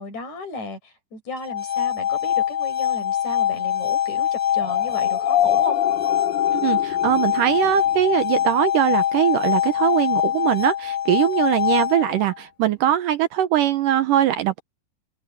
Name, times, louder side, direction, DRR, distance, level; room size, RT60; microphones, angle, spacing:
voice 1, 0.0-5.8, left 3 dB, 50° left, 7.2 m, -34 dB
sound 1, 1.4-12.3, left 10 dB, 20° left, 1.4 m, -23 dB
sound 2, 4.6-8.3, left 12 dB, 70° left, 2.2 m, -27 dB
voice 2, 6.5-14.6, right 11 dB, 70° right, 2.2 m, -21 dB
open air
omnidirectional pair, 4.3 m